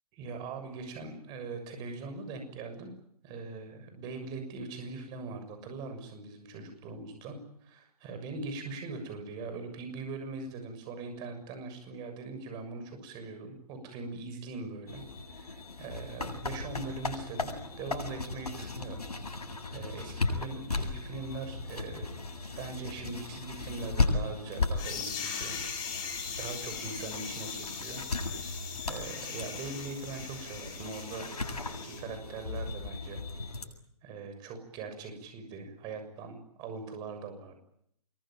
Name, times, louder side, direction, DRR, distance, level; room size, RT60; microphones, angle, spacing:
voice 1, 0.1-2.9 3.2-7.4 7.6-15.0 15.3-19.0 19.3-22.2 22.5-25.6 26.4-28.0 28.3-31.3 31.8-33.2 34.0-37.5, right 4 dB, 20° right, 7 dB, 6.6 m, -41 dB
sound 1, 14.9-33.7, left 3 dB, 75° left, 7.9 m, -36 dB
sound 2, 24.8-32.0, left 6 dB, 20° left, 7.8 m, -40 dB
26.0 x 23.0 x 9.1 m, 0.74 s
figure-of-eight pair, 145°, 20 cm